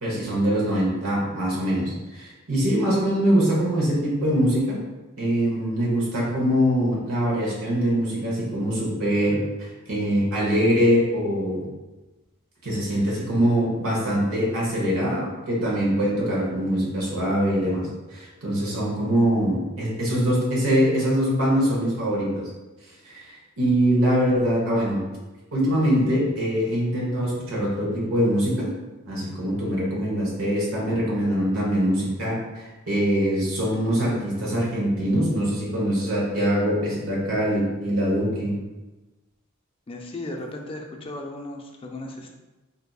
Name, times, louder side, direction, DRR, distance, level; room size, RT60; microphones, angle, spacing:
voice 1, 0.0-4.8 5.2-11.7 12.6-22.4 23.0-25.0 25.5-28.7 29.0-38.5, equal, 80° right, -4 dB, 1.0 m, -23 dB
voice 2, 39.9-42.4, left 1 dB, 25° left, 1 dB, 0.4 m, -36 dB
3.9 x 2.7 x 2.3 m, 1.1 s
head